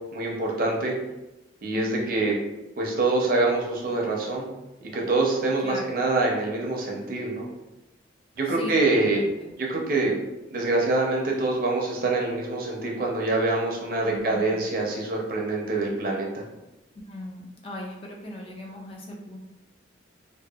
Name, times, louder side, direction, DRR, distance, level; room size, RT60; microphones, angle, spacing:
voice 1, 0.1-0.9 1.6-2.3 2.8-4.5 4.9-7.5 8.4-9.2 9.6-10.1 10.5-16.4, right 2 dB, 45° right, -1 dB, 0.5 m, -25 dB
voice 2, 1.7-2.1 5.6-5.9 8.5-9.5 14.0-14.6 17.1-19.4, equal, 30° left, -1 dB, 0.3 m, -38 dB
2.7 x 2.2 x 2.3 m, 0.98 s
head